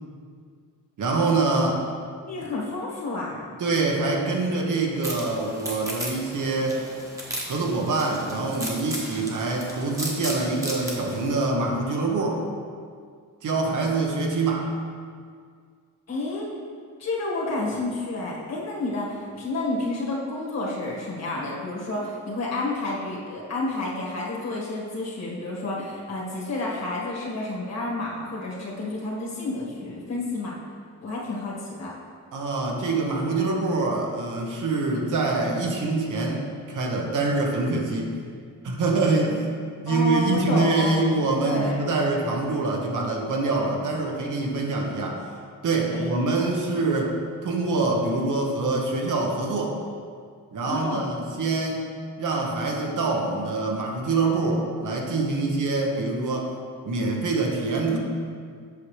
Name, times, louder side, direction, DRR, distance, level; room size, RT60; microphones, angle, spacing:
voice 1, 1.0-1.8 3.6-6.8 7.5-12.4 13.4-14.7 32.3-38.1 38.6-45.2 45.6-47.2 47.4-49.8 50.5-51.8 52.2-56.5 56.8-58.0, right 3 dB, 65° right, 0 dB, 1.1 m, -25 dB
voice 2, 2.2-3.5 16.1-16.5 17.0-30.6 31.0-31.9 39.9-41.1 41.4-41.9 45.9-46.1 50.7-51.1, left 2 dB, 50° left, -4 dB, 1.8 m, -30 dB
sound 1, 5.0-11.2, equal, 10° right, 1.1 m, -35 dB
8.3 x 6.1 x 3.3 m, 2.1 s
wide cardioid pair, 150°, 33 cm